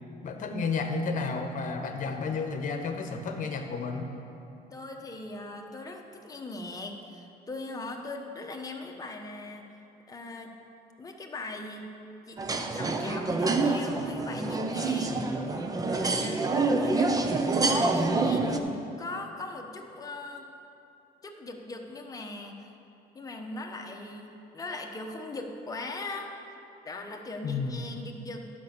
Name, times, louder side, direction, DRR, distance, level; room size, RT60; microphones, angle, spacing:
voice 1, 0.2-4.1 27.4-27.9, left 4 dB, 50° left, 5 dB, 1.0 m, -32 dB
voice 2, 4.7-9.6 10.1-10.5 11.0-11.9 12.3-15.5 15.8-16.5 16.8-17.1 17.5-20.5 21.2-22.7 23.1-26.3 26.8-28.5, left 2 dB, 20° left, 2 dB, 1.0 m, -40 dB
sound 1, 12.4-18.6, right 3 dB, 20° right, 0.6 m, -27 dB
11.5 x 5.4 x 6.8 m, 2.8 s
cardioid pair, 110°, 17 cm